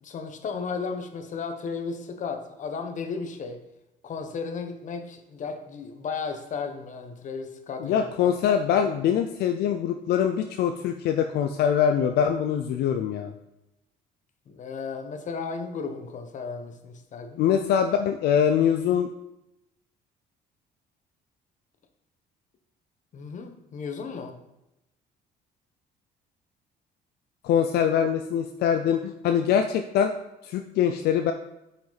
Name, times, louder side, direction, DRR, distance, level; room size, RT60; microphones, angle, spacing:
voice 1, 0.0-3.6 4.0-8.3 14.5-17.4 23.1-24.4, left 5 dB, 50° left, 7 dB, 1.1 m, -34 dB
voice 2, 7.8-13.3 17.4-19.1 27.4-30.1 30.4-31.3, left 8 dB, 75° left, 7 dB, 0.5 m, -23 dB
8.8 x 5.8 x 4.0 m, 0.89 s
cardioid pair, 110°, 17 cm